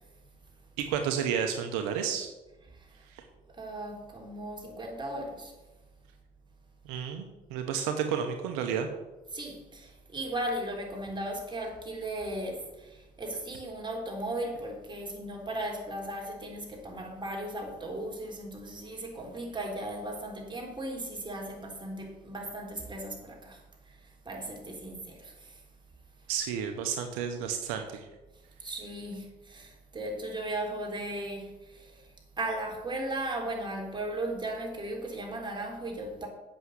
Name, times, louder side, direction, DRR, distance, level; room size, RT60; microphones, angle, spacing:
voice 1, 0.8-2.3 3.1-3.2 6.8-8.9 26.3-28.0, right 7 dB, 80° right, 1.0 m, -31 dB
voice 2, 3.6-5.5 9.3-23.6 24.3-25.6 28.6-31.9 32.4-36.3, right 1 dB, 20° right, 3.7 m, -36 dB
8.0 x 6.3 x 8.1 m
hypercardioid pair, 65°, 21 cm